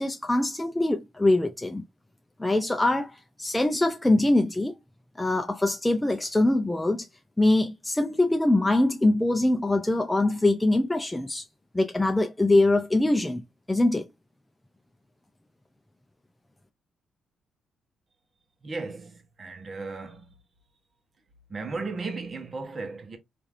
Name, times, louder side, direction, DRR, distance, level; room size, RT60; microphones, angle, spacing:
voice 1, 0.0-1.8 2.4-4.8 5.2-7.1 7.4-11.5 11.7-14.1, left 2 dB, 15° left, 0.4 m, -23 dB
voice 2, 18.6-20.3 21.5-23.2, right 3 dB, 40° right, 0.9 m, -35 dB
3.2 x 2.5 x 2.5 m
supercardioid pair, 60°, 0 cm